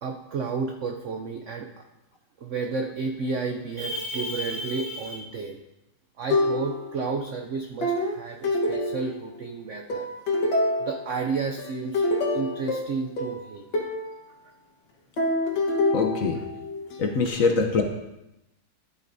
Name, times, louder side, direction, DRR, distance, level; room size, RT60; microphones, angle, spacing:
voice 1, 0.0-1.9 2.4-5.6 6.2-10.1 10.8-12.0 12.3-13.7, right 4 dB, 75° right, 4 dB, 0.7 m, -31 dB
sound 1, 6.3-7.1 7.8-9.4 9.9-11.1 11.6-14.1 15.2-17.0, left 2 dB, 75° left, 2.0 m, -26 dB
voice 2, 15.9-16.4 17.0-17.8, left 4 dB, 60° left, 3 dB, 1.0 m, -23 dB
12.5 x 8.2 x 2.6 m, 0.93 s
omnidirectional pair, 2.0 m